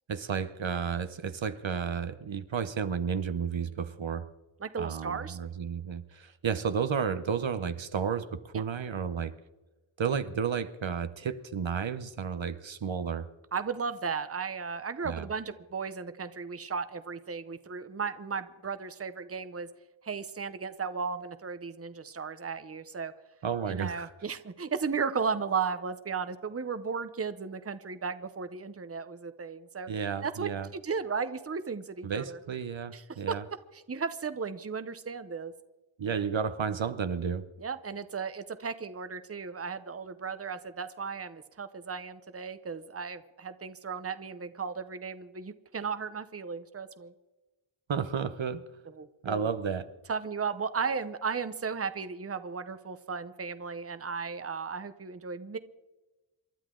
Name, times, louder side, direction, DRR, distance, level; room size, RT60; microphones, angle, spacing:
voice 1, 0.1-4.3 4.8-9.3 10.0-13.3 15.0-15.3 23.4-24.1 29.9-30.7 32.0-33.4 36.0-37.5 47.9-48.7 49.2-49.9, right 6 dB, 70° right, 0.9 m, -32 dB
voice 2, 4.6-5.4 13.5-19.7 20.0-23.1 23.7-29.9 30.2-32.4 32.9-33.3 33.7-35.5 37.6-47.1 48.9-49.5 50.1-55.6, right 5 dB, 30° right, 0.8 m, -35 dB
28.0 x 12.0 x 3.8 m
wide cardioid pair, 80°, 48 cm